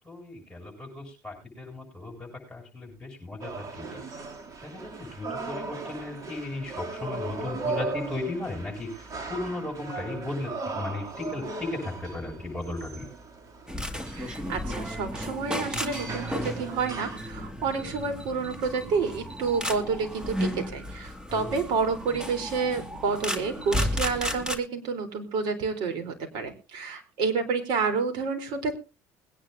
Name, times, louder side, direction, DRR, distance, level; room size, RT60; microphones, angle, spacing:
voice 1, 0.0-4.0 4.6-13.1 21.3-21.6, left 2 dB, 10° left, -2 dB, 7.6 m, -36 dB
sound 1, 3.4-17.2, right 3 dB, 45° right, 2.9 m, -38 dB
sound 2, 13.7-24.6, equal, 10° right, 2.0 m, -33 dB
voice 2, 14.2-28.7, right 5 dB, 65° right, 5 dB, 3.8 m, -29 dB
21.5 x 10.0 x 2.7 m, 0.29 s
supercardioid pair, 80°, 8 cm